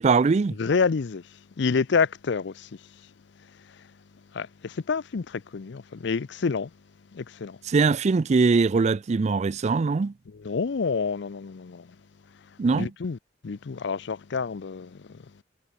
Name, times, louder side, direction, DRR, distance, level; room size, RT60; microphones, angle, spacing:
voice 1, 0.0-0.6 7.7-10.1 12.6-12.9, right 4 dB, 35° right, 0.4 m, -21 dB
voice 2, 0.5-3.1 3.4-3.9 4.3-6.7 7.1-7.6 10.3-12.0 12.8-13.2 13.4-15.4, left 5 dB, 65° left, 0.5 m, -29 dB
head